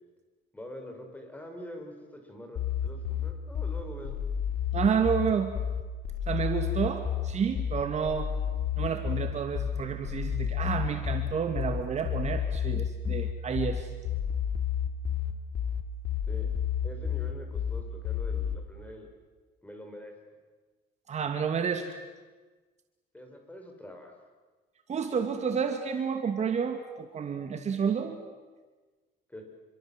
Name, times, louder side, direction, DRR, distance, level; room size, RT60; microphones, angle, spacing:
voice 1, 0.5-4.2 16.3-16.5 16.8-19.1 19.6-20.1 23.1-24.3 29.3-29.4, equal, 10° left, 3 dB, 7.0 m, -45 dB
sound 1, 2.6-18.6, left 9 dB, 65° left, 2.8 m, -31 dB
voice 2, 4.7-5.5 6.3-8.3 8.8-13.9 21.1-22.0 24.9-28.2, right 6 dB, 40° right, 5 dB, 2.5 m, -30 dB
27.5 x 24.5 x 8.0 m, 1.3 s
cardioid pair, 110°, 17 cm